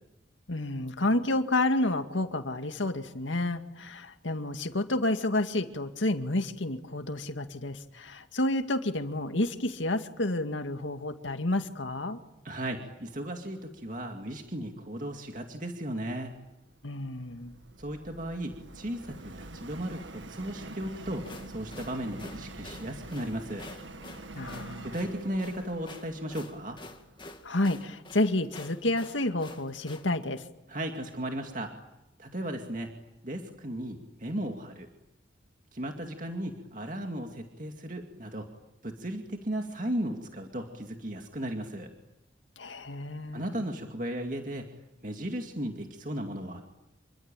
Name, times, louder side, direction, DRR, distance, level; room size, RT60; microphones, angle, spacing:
voice 1, 0.5-12.2 16.8-17.6 24.3-24.9 27.4-30.4 42.6-43.5, left 2 dB, 85° left, 7 dB, 2.1 m, -30 dB
voice 2, 12.4-16.4 17.8-23.7 24.8-26.8 30.7-31.7 32.2-32.9 33.2-34.9 35.7-38.5 38.8-41.9 43.3-44.7 45.0-46.6, right 1 dB, 45° right, 3 dB, 2.3 m, -35 dB
Subway metro underground, 16.3-27.4, right 2 dB, 80° right, 1.8 m, -46 dB
Marcha alejandose, 21.1-30.1, left 2 dB, 25° left, 2.1 m, -48 dB
28.0 x 23.5 x 9.1 m, 0.94 s
head